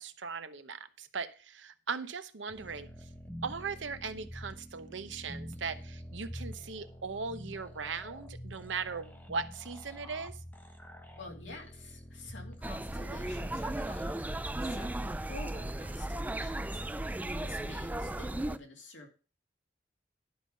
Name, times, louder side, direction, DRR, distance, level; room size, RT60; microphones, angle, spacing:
voice 1, 0.0-3.1 3.4-10.4 17.2-17.5, right 5 dB, 85° right, 10 dB, 0.9 m, -39 dB
sound 1, 2.5-15.0, equal, 10° left, 1.2 m, -47 dB
voice 2, 11.2-19.1, left 2 dB, 85° left, 1 dB, 2.4 m, -50 dB
sound 2, 12.6-18.6, right 1 dB, 10° right, 0.4 m, -36 dB
11.5 x 5.5 x 5.2 m, 0.35 s
head